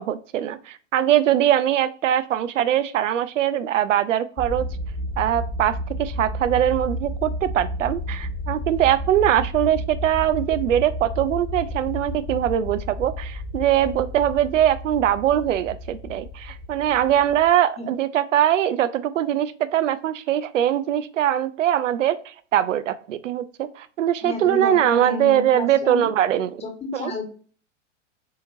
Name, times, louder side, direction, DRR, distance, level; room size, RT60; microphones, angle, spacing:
voice 1, 0.0-4.7 5.2-22.2 22.5-26.6 26.9-27.1, right 11 dB, 85° right, 14 dB, 0.5 m, -22 dB
sound 1, 4.4-17.5, left 1 dB, 30° left, 1.5 m, -32 dB
voice 2, 24.2-26.1 26.6-27.3, left 3 dB, 15° left, 3 dB, 1.3 m, -31 dB
6.3 x 2.9 x 2.6 m, 0.41 s
hypercardioid pair, 120°, 37 cm